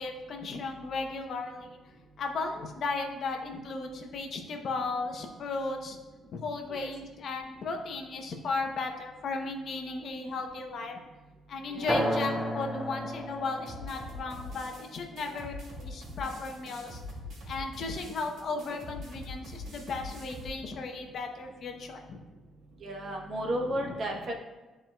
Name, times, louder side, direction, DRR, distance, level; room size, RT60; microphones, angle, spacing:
voice 1, 0.0-1.8 2.2-6.0 6.3-11.0 11.5-17.0 17.5-22.2 23.5-23.9, left 3 dB, 45° left, 3 dB, 0.7 m, -35 dB
voice 2, 11.7-12.0 15.2-15.4 22.8-24.4, right 1 dB, 45° right, 1 dB, 0.9 m, -34 dB
sound 1, 11.9-16.9, equal, 20° right, 2.3 m, -35 dB
sound 2, 13.7-20.5, left 1 dB, 70° right, 2.3 m, -43 dB
13.0 x 4.5 x 2.3 m, 1.2 s
cardioid pair, 170°, 0 cm